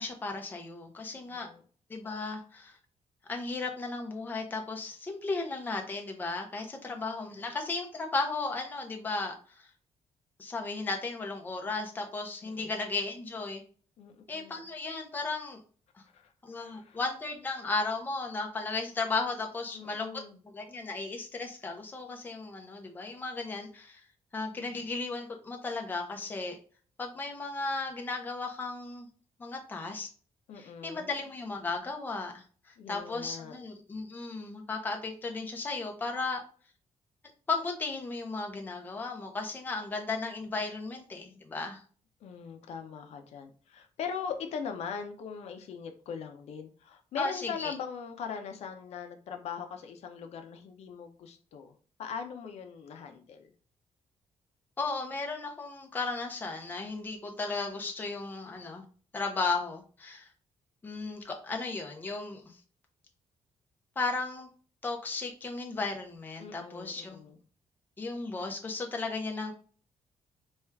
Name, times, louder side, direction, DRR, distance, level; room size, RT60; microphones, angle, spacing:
voice 1, 0.0-1.5 1.9-2.7 3.3-9.7 10.4-13.6 14.3-15.6 16.4-20.2 20.5-24.0 24.3-26.6 27.0-29.1 29.4-30.1 30.6-36.4 37.5-41.8 47.2-47.7 54.8-58.8 59.1-60.3 60.8-62.4 64.0-64.5 64.8-67.2 68.0-69.5, left 3 dB, 15° left, 2 dB, 0.6 m, -35 dB
voice 2, 1.1-1.6 6.6-7.5 12.4-12.7 14.0-14.6 16.1-17.0 19.7-20.4 24.5-24.9 30.5-31.1 32.8-33.6 42.2-53.5 66.4-67.4, left 6 dB, 65° left, 5 dB, 0.5 m, -41 dB
4.3 x 2.3 x 3.3 m, 0.42 s
cardioid pair, 180°, 12 cm